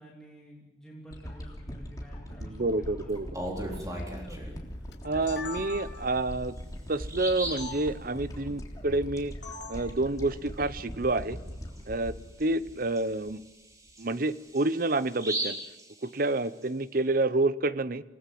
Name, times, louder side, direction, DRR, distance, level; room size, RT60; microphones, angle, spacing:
voice 1, 0.0-3.1 3.7-4.6, equal, 5° left, -4 dB, 3.2 m, -49 dB
sound 1, 1.1-13.4 13.9-14.0, equal, 20° left, 3.4 m, -41 dB
voice 2, 2.5-3.3 3.6-3.8 5.0-6.6 6.9-9.3 9.7-11.4 11.9-13.4 14.0-15.6 16.0-18.0, right 2 dB, 50° right, 15 dB, 0.9 m, -28 dB
Bird vocalization bird call bird song, 3.1-4.6 6.1-6.2 6.6-6.7 7.0-7.8 11.2-11.4 11.8-11.9 12.4-16.6, right 1 dB, 20° right, 4.0 m, -38 dB
sound 2, 4.9-6.2 7.6-7.7 9.4-9.8, left 3 dB, 85° left, 5.3 m, -41 dB
28.0 x 19.0 x 7.8 m, 1.1 s
head